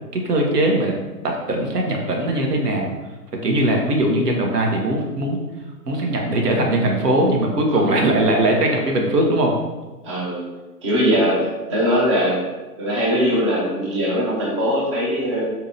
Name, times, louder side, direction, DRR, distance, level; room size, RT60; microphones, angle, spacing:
voice 1, 0.1-0.9 1.2-2.9 3.4-5.4 5.9-9.6, right 1 dB, 75° right, 1 dB, 0.9 m, -20 dB
voice 2, 7.7-8.0 10.0-10.4 10.8-11.4 11.7-12.4 12.8-15.5, equal, 20° right, -6 dB, 0.4 m, -21 dB
4.1 x 2.8 x 2.6 m, 1.2 s
figure-of-eight pair, 125°, 49 cm